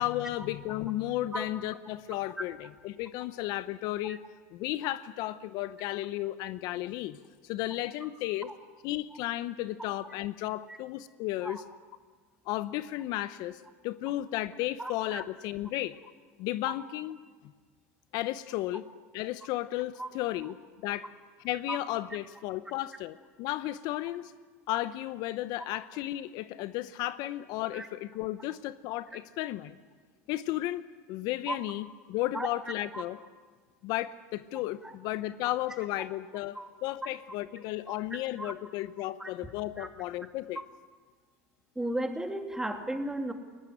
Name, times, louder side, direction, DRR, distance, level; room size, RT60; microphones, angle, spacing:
voice 1, 0.0-4.2 4.5-8.5 8.8-11.6 12.5-16.0 16.4-17.2 18.1-18.8 19.1-21.1 21.4-24.3 24.7-29.8 30.3-30.8 31.1-33.2 33.8-40.6, left 15 dB, 55° left, 15 dB, 0.7 m, -34 dB
voice 2, 14.8-15.2 20.0-20.1 21.7-21.8 27.7-27.9 31.5-31.6 32.3-32.5 32.9-33.0 34.8-34.9 36.5-36.7 37.9-38.5 39.2-39.3 39.8-39.9 41.8-43.3, right 1 dB, 5° right, 5 dB, 2.6 m, -35 dB
20.5 x 18.0 x 9.9 m, 1.5 s
hypercardioid pair, 100°, 8 cm